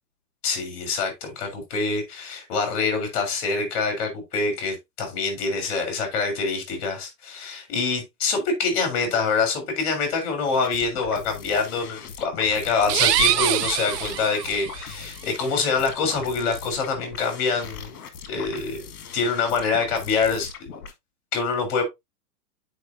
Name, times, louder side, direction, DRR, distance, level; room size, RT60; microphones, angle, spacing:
voice 1, 0.4-18.0 18.3-18.8 19.1-20.5 21.3-21.8, left 4 dB, 40° left, 3.6 m, -25 dB
sound 1, 10.5-20.9, left 6 dB, 60° left, 2.0 m, -40 dB
sound 2, 12.8-14.8, right 12 dB, 75° right, 0.8 m, -23 dB
9.5 x 5.1 x 2.6 m
supercardioid pair, 165°, 49 cm